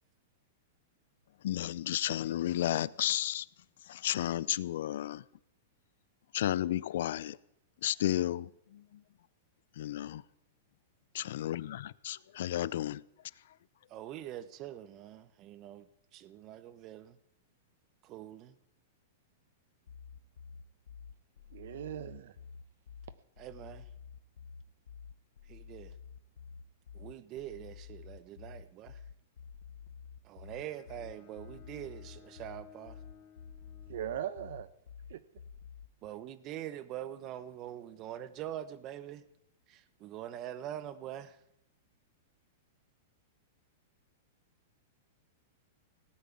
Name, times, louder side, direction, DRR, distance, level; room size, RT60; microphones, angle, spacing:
voice 1, 1.4-3.5 3.8-5.2 6.3-7.4 7.8-9.0 9.8-10.2 11.1-13.0, left 12 dB, 65° left, 0.5 m, -33 dB
voice 2, 13.9-15.9 16.1-17.2 18.0-18.5 23.4-23.9 25.5-25.9 26.9-29.0 30.2-33.0 36.0-39.2 39.7-41.4, right 12 dB, 30° right, 1.1 m, -44 dB
sound 1, 19.9-35.9, left 6 dB, 85° left, 0.9 m, -50 dB
voice 3, 21.5-22.3 33.9-34.7 35.1-35.2, right 11 dB, 65° right, 1.1 m, -39 dB
Bowed string instrument, 30.4-34.7, left 7 dB, 35° left, 3.2 m, -59 dB
17.5 x 9.4 x 8.7 m
supercardioid pair, 150°, 0 cm